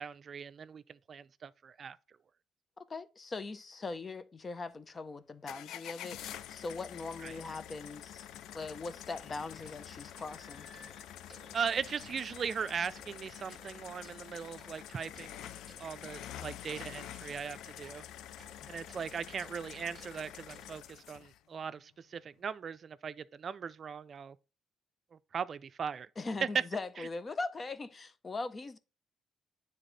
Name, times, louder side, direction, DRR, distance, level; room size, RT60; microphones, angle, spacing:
voice 1, 0.0-2.0 7.2-7.3 11.5-18.0 18.7-24.4 25.1-26.1 27.0-27.1, right 6 dB, 50° right, 0.4 m, -39 dB
voice 2, 2.9-8.3 8.5-10.7 26.2-28.8, left 3 dB, 35° left, 0.7 m, -40 dB
sound 1, 5.5-21.4, left 11 dB, 85° left, 0.4 m, -47 dB
sound 2, 7.5-14.2, left 6 dB, 70° left, 1.3 m, -59 dB
sound 3, 9.1-20.9, right 3 dB, 30° right, 1.4 m, -62 dB
9.2 x 3.6 x 4.0 m
cardioid pair, 90°, 0 cm